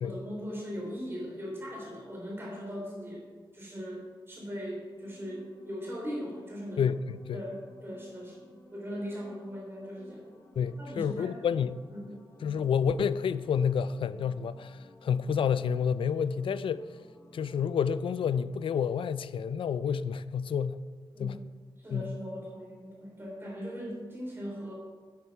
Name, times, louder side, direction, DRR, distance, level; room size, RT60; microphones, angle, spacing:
voice 1, 0.0-3.2 3.5-6.9 7.3-10.3 10.8-11.4 11.9-12.2 21.1-21.4 21.8-24.7, equal, 25° right, 3.4 m, -39 dB
sound 1, 4.8-18.5, equal, 30° left, 1.3 m, -55 dB
voice 2, 6.8-7.4 10.6-11.8 12.4-16.8 17.3-20.8 21.2-21.4 21.9-22.2, left 7 dB, 75° left, 0.4 m, -29 dB
10.0 x 8.2 x 4.7 m
wide cardioid pair, 160°, 9 cm